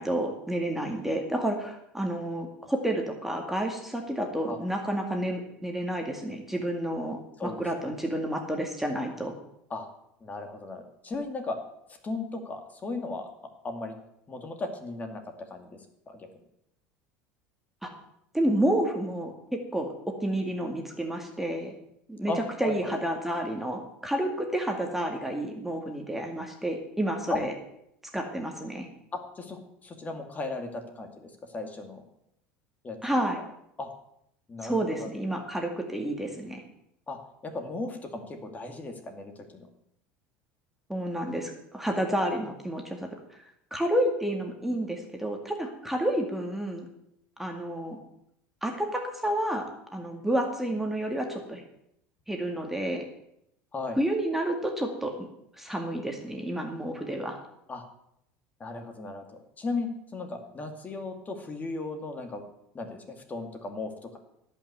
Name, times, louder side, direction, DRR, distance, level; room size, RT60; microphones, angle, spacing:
voice 1, 0.0-9.4 17.8-17.9 18.3-21.7 22.1-22.3 22.6-27.5 28.1-28.9 33.0-33.4 34.6-36.6 40.9-43.4 43.7-46.9 47.4-48.0 48.6-51.6 52.3-53.1 54.0-55.3 55.6-57.4, right 1 dB, 5° right, 2 dB, 2.1 m, -30 dB
voice 2, 7.4-7.9 9.7-9.9 10.2-11.6 12.0-13.3 13.6-13.9 14.3-15.2 15.5-15.8 16.1-16.2 22.3-22.9 27.3-27.4 29.1-32.0 32.8-33.0 33.8-33.9 34.5-35.1 37.1-37.2 37.4-39.7 53.7-54.0 57.7-57.8 58.6-62.4 62.7-64.2, left 3 dB, 25° left, 5 dB, 2.4 m, -36 dB
17.0 x 5.9 x 8.2 m, 0.78 s
supercardioid pair, 100°, 6 cm